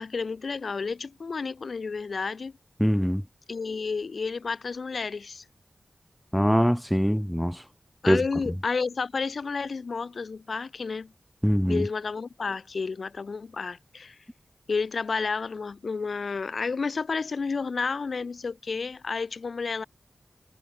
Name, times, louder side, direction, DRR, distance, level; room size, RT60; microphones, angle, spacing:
voice 1, 0.0-2.5 3.5-5.4 8.0-11.1 11.7-14.2 14.7-19.8, left 4 dB, 75° left, 0.7 m, -31 dB
voice 2, 2.8-3.2 6.3-7.6 8.1-8.2 11.4-11.9, equal, ahead, 0.5 m, -23 dB
wide cardioid pair, 75°, 0 cm